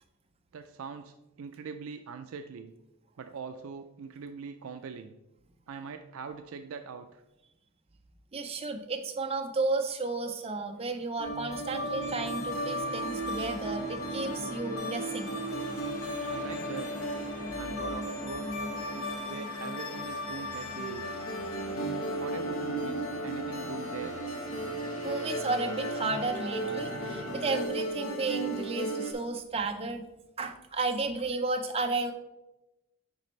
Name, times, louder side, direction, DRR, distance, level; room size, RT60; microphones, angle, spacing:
voice 1, 0.5-2.7 3.2-5.2 5.7-7.2 16.3-17.0 17.6-18.7 19.3-21.1 22.2-24.2, right 5 dB, 70° right, 7 dB, 0.4 m, -42 dB
voice 2, 8.3-15.4 16.2-16.3 25.0-30.0 30.4-32.1, right 3 dB, 25° right, 5 dB, 0.6 m, -33 dB
sound 1, 11.2-29.1, right 1 dB, 65° left, 1.1 m, -36 dB
sound 2, 11.4-27.7, equal, 20° left, 1.5 m, -40 dB
10.5 x 4.2 x 3.1 m, 0.96 s
head